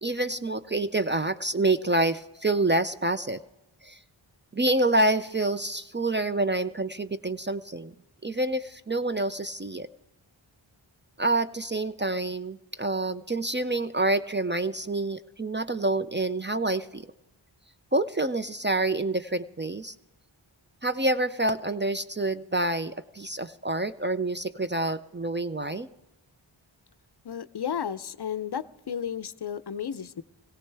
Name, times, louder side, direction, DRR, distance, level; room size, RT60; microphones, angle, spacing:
voice 1, 0.0-3.4 3.8-4.0 4.5-7.9 8.2-9.9 11.2-17.1 17.9-19.9 20.8-25.9, right 2 dB, 25° right, 11 dB, 0.4 m, -27 dB
voice 2, 27.2-30.2, left 8 dB, 55° left, 16 dB, 0.5 m, -33 dB
18.0 x 17.0 x 3.3 m, 0.96 s
wide cardioid pair, 45°, 49 cm